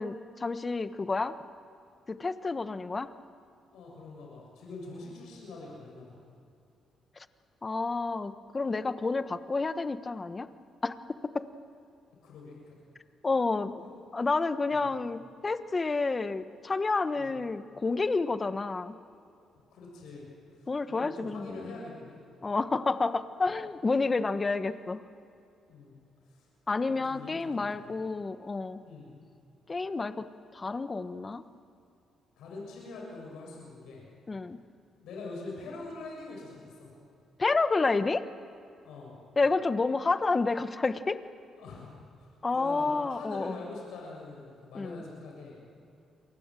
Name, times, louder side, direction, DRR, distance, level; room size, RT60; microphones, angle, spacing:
voice 1, 0.0-1.3 2.1-3.1 7.6-10.5 10.8-10.9 11.2-11.4 13.2-13.7 14.1-18.9 20.7-21.7 22.4-25.0 26.7-28.8 29.7-30.3 30.5-31.4 34.3-34.6 37.4-38.2 39.4-41.2 42.4-43.6 44.7-45.0, left 3 dB, 30° left, 11 dB, 1.2 m, -29 dB
voice 2, 3.7-6.2 12.2-12.8 13.8-13.9 14.7-14.9 17.1-17.4 19.7-20.3 20.5-22.2 25.7-25.9 26.3-26.4 26.7-27.9 28.8-29.1 32.4-34.0 35.0-36.9 38.8-39.2 41.6-45.6, left 3 dB, 85° left, -2 dB, 6.8 m, -44 dB
29.5 x 23.5 x 7.7 m, 2.5 s
cardioid pair, 90°, 0 cm